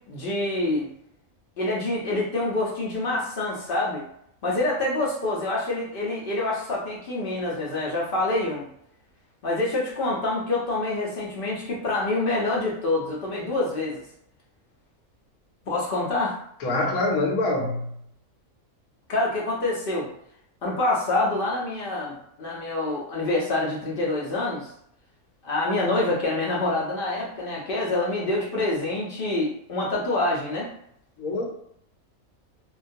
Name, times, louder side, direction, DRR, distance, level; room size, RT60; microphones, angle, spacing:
voice 1, 0.1-0.9 1.6-4.1 4.4-8.7 9.4-14.0 15.7-16.4 19.1-20.1 20.6-24.7 25.4-30.7, left 2 dB, 60° left, -4 dB, 0.6 m, -26 dB
voice 2, 16.6-17.9 31.2-31.4, left 2 dB, 85° left, 0 dB, 1.0 m, -25 dB
2.3 x 2.2 x 2.5 m, 0.71 s
omnidirectional pair, 1.5 m